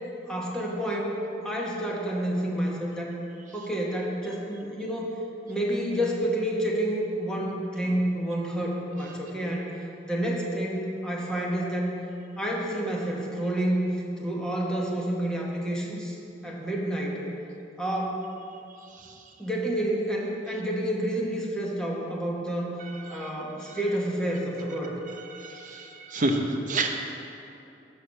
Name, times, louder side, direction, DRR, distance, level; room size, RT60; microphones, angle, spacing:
voice 1, 0.3-1.1 1.4-3.1 3.5-5.1 5.5-9.7 10.0-11.9 12.4-13.9 14.2-16.2 16.4-17.2 17.8-18.2 19.4-22.7 23.1-25.0, right 1 dB, 5° left, -3 dB, 1.0 m, -29 dB
voice 2, 25.3-26.9, right 2 dB, 45° right, 3 dB, 0.7 m, -28 dB
6.4 x 5.6 x 6.3 m, 2.7 s
head